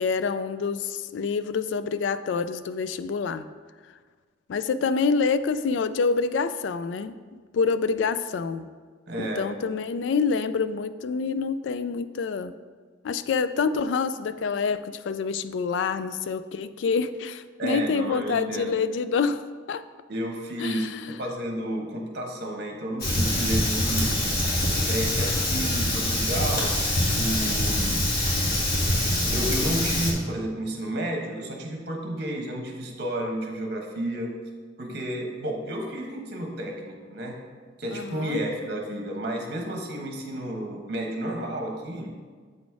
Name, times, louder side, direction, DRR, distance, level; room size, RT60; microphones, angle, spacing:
voice 1, 0.0-3.4 4.5-8.7 9.4-12.5 13.0-19.8 20.6-21.1 37.9-38.4, left 5 dB, 70° left, 13 dB, 0.3 m, -27 dB
voice 2, 9.1-9.5 17.6-18.7 20.1-20.9 21.2-24.3 24.8-26.8 27.1-28.1 29.2-34.3 34.8-37.4 37.8-42.1, right 1 dB, 55° right, 1 dB, 1.1 m, -31 dB
Fire, 23.0-30.1, left 1 dB, 50° left, 1.4 m, -24 dB
7.6 x 4.1 x 4.7 m, 1.6 s
head